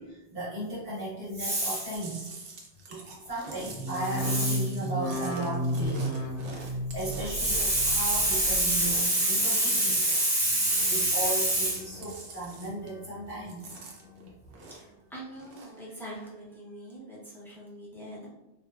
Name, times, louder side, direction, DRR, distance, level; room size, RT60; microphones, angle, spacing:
voice 1, 0.0-2.3 2.9-3.0 3.3-6.2 6.5-13.6, right 1 dB, 60° right, -9 dB, 1.0 m, -29 dB
Chewing mastication, 1.9-10.4 10.7-11.6 11.9-13.0 13.3-15.0 15.3-15.8, right 3 dB, 85° right, 0.9 m, -45 dB
sound 1, 3.7-9.0 9.3-9.9 10.4-11.1 11.5-12.2 12.6-13.3 13.7-14.3 14.8-14.9, equal, 80° left, 0.9 m, -35 dB
voice 2, 14.7-18.3, right 1 dB, 5° left, -6 dB, 0.4 m, -44 dB
3.1 x 2.0 x 2.2 m, 0.95 s
omnidirectional pair, 1.1 m